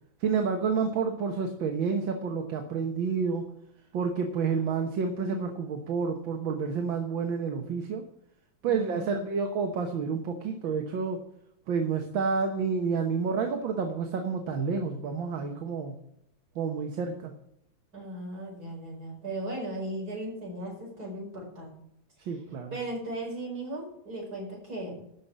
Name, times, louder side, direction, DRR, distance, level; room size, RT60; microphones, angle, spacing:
voice 1, 0.2-3.5 3.9-8.0 8.6-11.2 11.7-16.0 16.6-17.3 22.3-22.8, right 5 dB, 75° right, 4 dB, 1.9 m, -29 dB
voice 2, 8.7-9.2 17.9-21.7 22.2-22.3 22.7-25.0, right 1 dB, 50° right, -2 dB, 5.6 m, -37 dB
12.5 x 5.8 x 8.0 m, 0.75 s
omnidirectional pair, 2.1 m